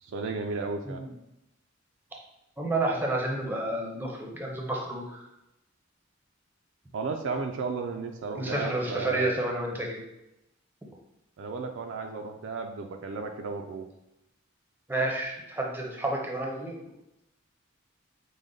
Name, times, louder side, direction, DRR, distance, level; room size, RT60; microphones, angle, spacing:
voice 1, 0.0-1.0 6.9-9.3 11.4-13.9, right 4 dB, 70° right, 4 dB, 0.4 m, -34 dB
voice 2, 2.6-5.3 8.3-10.0 14.9-16.8, right 2 dB, 10° right, -1 dB, 0.6 m, -30 dB
4.9 x 2.1 x 3.8 m, 0.88 s
head